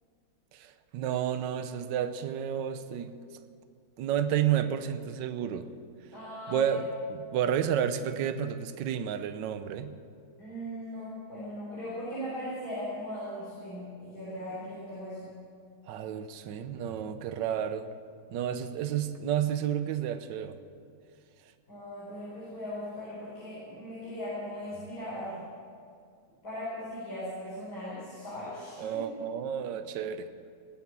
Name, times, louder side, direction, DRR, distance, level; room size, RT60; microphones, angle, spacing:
voice 1, 0.5-3.2 4.0-5.7 6.5-9.9 15.9-17.9 18.3-20.6 28.8-30.3, right 9 dB, 65° right, 10 dB, 1.3 m, -31 dB
voice 2, 6.1-6.7 10.4-15.3 21.7-25.4 26.4-29.0, equal, 45° left, -9 dB, 4.7 m, -39 dB
20.5 x 7.5 x 7.5 m, 2.3 s
omnidirectional pair, 2.3 m